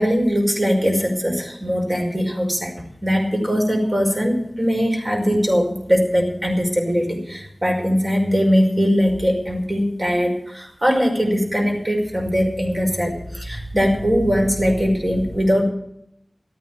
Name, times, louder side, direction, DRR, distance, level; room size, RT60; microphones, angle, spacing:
voice 1, 0.0-2.7 3.0-15.6, equal, 40° right, 1 dB, 5.5 m, -20 dB
13.5 x 9.5 x 9.8 m, 0.77 s
wide cardioid pair, 40°, 0 cm